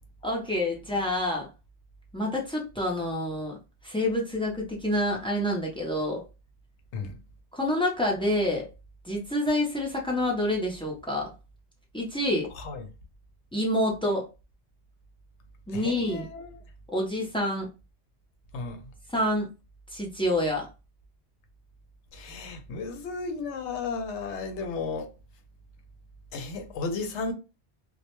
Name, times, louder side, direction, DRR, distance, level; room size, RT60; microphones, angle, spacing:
voice 1, 0.2-1.5 2.1-3.6 3.8-6.2 7.5-8.7 9.0-11.3 11.9-12.5 13.5-14.2 15.7-16.3 16.9-17.7 19.1-19.5 19.9-20.7, left 1 dB, 10° left, 0.4 m, -27 dB
voice 2, 15.7-16.6 18.5-18.9 22.1-25.1 26.3-27.3, left 4 dB, 80° left, 0.9 m, -34 dB
2.3 x 2.1 x 2.9 m
omnidirectional pair, 1.2 m